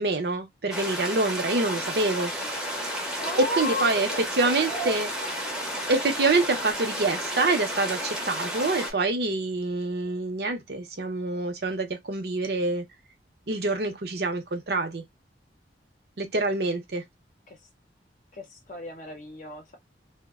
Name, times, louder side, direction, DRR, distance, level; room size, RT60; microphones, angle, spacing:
voice 1, 0.0-2.3 3.4-4.1 4.4-5.1 5.9-12.8 13.5-15.0 16.2-17.0, right 3 dB, 60° right, 0.7 m, -26 dB
sound 1, 0.7-8.9, equal, 5° right, 0.7 m, -32 dB
voice 2, 3.2-4.2 4.5-5.6 17.5-17.6 18.3-19.8, left 1 dB, 45° left, 0.6 m, -34 dB
2.5 x 2.1 x 2.3 m
head